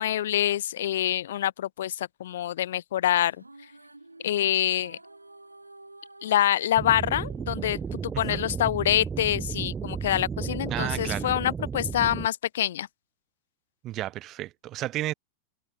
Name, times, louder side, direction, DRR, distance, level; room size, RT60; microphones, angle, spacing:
voice 1, 0.0-3.4 4.2-5.0 6.2-12.9, left 12 dB, 60° left, 1.8 m, -26 dB
sound 1, 3.3-8.8, right 2 dB, 85° right, 7.0 m, -51 dB
sound 2, 6.8-12.3, right 6 dB, 20° right, 1.6 m, -33 dB
voice 2, 10.7-11.3 13.8-15.1, right 15 dB, 35° right, 4.9 m, -32 dB
figure-of-eight pair, 90°, 0 cm